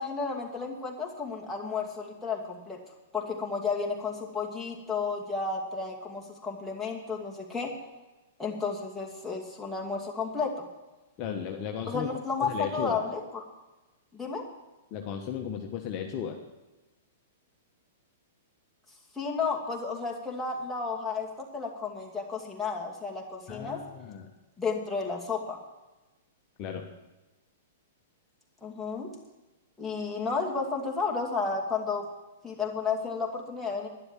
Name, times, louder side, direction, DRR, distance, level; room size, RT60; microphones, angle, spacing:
voice 1, 0.0-2.8 3.1-7.7 8.4-10.7 11.9-13.4 14.1-14.4 19.1-23.8 24.6-25.6 28.6-29.1 29.8-32.1 32.4-33.9, left 4 dB, 5° left, -3 dB, 2.4 m, -32 dB
voice 2, 11.2-12.1 12.4-13.0 14.9-16.4 23.5-24.3 26.6-26.9, left 8 dB, 35° left, 2 dB, 1.2 m, -35 dB
12.0 x 10.5 x 7.5 m, 1.1 s
figure-of-eight pair, 105°, 0 cm